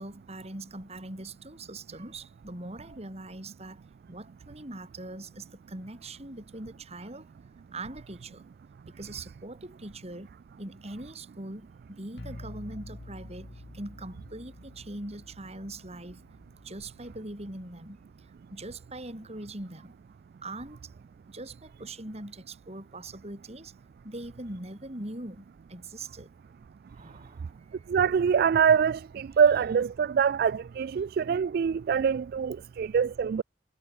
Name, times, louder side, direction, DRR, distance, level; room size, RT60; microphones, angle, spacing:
voice 1, 0.0-7.3 7.7-8.4 8.9-10.3 10.6-16.2 16.6-19.9 20.4-20.9 21.3-23.7 24.0-26.3 26.9-27.8, right 2 dB, 35° right, 4.8 m, -42 dB
sound 1, 12.2-17.9, left 1 dB, 65° left, 1.7 m, -48 dB
voice 2, 27.9-33.4, right 7 dB, 55° right, 0.3 m, -24 dB
head